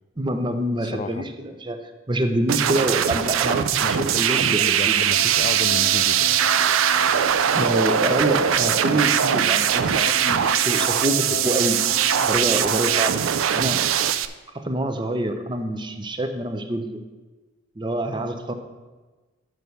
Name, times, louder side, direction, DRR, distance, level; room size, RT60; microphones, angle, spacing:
voice 1, 0.2-1.8 2.1-5.0 7.5-11.8 12.3-13.2 13.5-13.8 14.5-17.0 17.8-18.5, right 1 dB, 25° right, 7 dB, 0.6 m, -26 dB
voice 2, 0.8-1.2 3.8-6.4, left 3 dB, 35° left, 11 dB, 0.3 m, -33 dB
sound 1, 2.5-14.3, right 9 dB, 90° right, 0.4 m, -21 dB
sound 2, 5.1-13.1, left 3 dB, 80° left, 0.6 m, -34 dB
6.4 x 6.2 x 6.9 m, 1.3 s
head